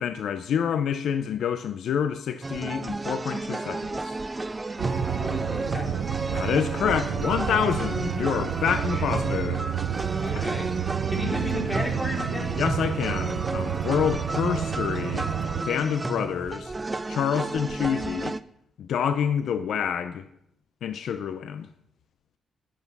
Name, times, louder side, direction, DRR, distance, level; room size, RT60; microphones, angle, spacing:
voice 1, 0.0-4.2 6.3-9.7 10.3-10.5 12.6-15.3 15.7-16.7 17.1-18.3 18.8-20.2 20.8-21.7, left 8 dB, 75° left, 0.6 m, -27 dB
sound 1, 2.4-18.4, right 2 dB, 25° right, 0.5 m, -32 dB
sound 2, 4.8-15.6, right 10 dB, 85° right, 0.6 m, -30 dB
voice 2, 5.0-6.1 8.9-9.1 10.2-12.7, left 1 dB, 15° left, 3.6 m, -34 dB
11.5 x 8.4 x 5.4 m
cardioid pair, 70°, 0 cm